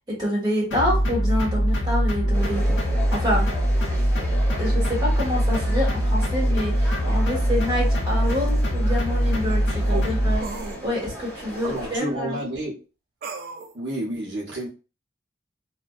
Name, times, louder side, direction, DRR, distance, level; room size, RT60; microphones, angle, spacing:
voice 1, 0.1-2.7 3.1-3.5 4.6-10.4 10.8-12.4, left 1 dB, 20° right, -4 dB, 1.3 m, -27 dB
sound 1, 0.7-10.4, equal, 70° left, 0.6 m, -22 dB
sound 2, 2.3-12.0, equal, 10° left, 1.3 m, -37 dB
sound 3, 8.1-8.2 10.4-10.8 13.2-13.7, right 4 dB, 50° right, 0.4 m, -35 dB
voice 2, 9.7-10.1 11.6-12.8 13.7-14.7, right 1 dB, 75° right, -4 dB, 0.7 m, -30 dB
2.5 x 2.1 x 2.3 m, 0.32 s
head